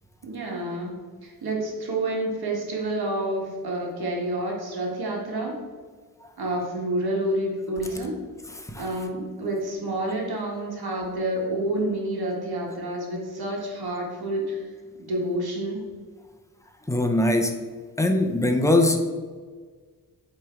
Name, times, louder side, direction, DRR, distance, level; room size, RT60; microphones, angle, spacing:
voice 1, 0.2-0.9 1.2-5.6 6.4-8.2 8.8-14.6 15.0-15.9, right 1 dB, 80° right, -1 dB, 1.6 m, -29 dB
voice 2, 16.9-17.5 18.0-19.1, left 1 dB, 10° left, 3 dB, 0.6 m, -21 dB
8.4 x 3.2 x 4.4 m, 1.5 s
wide cardioid pair, 135°, 37 cm